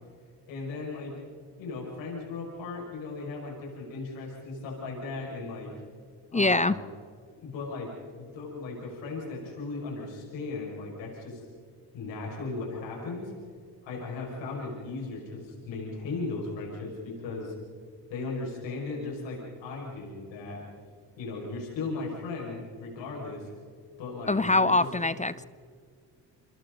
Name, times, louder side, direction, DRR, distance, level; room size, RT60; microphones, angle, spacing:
voice 1, 0.5-1.1 1.6-5.7 6.3-6.8 7.4-7.9 8.2-11.4 11.9-13.3 13.8-17.5 18.1-20.6 21.2-23.5 24.0-25.1, left 3 dB, 85° left, -2 dB, 6.0 m, -37 dB
voice 2, 6.3-6.8 24.3-25.4, left 2 dB, 15° left, 16 dB, 0.7 m, -24 dB
28.5 x 26.0 x 4.1 m, 2.1 s
supercardioid pair, 50°, 44 cm